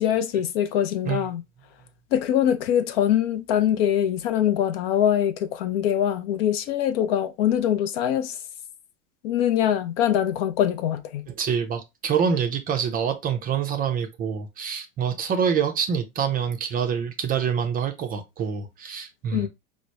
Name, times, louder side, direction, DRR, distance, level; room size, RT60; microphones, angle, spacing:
voice 1, 0.0-1.4 2.1-8.4 9.2-11.3 19.3-19.5, left 10 dB, 45° left, 0.4 m, -23 dB
voice 2, 11.3-19.5, right 7 dB, 20° right, 0.5 m, -26 dB
4.9 x 2.0 x 2.9 m
figure-of-eight pair, 80°, 41 cm